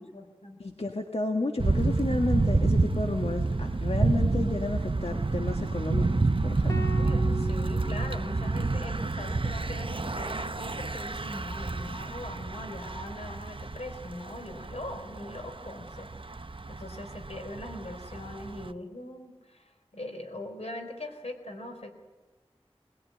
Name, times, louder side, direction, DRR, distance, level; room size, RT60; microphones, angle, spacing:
voice 1, 0.0-0.6 6.7-16.4 16.7-21.9, left 1 dB, 85° left, 4 dB, 4.0 m, -41 dB
voice 2, 0.6-6.8, left 2 dB, 70° left, 3 dB, 1.7 m, -31 dB
Thunder / Bicycle, 1.6-18.7, right 3 dB, 55° right, 0.9 m, -29 dB
sound 1, 6.7-9.0, left 1 dB, 30° left, 1.9 m, -39 dB
22.0 x 21.0 x 9.5 m, 1.2 s
wide cardioid pair, 45°, 11 cm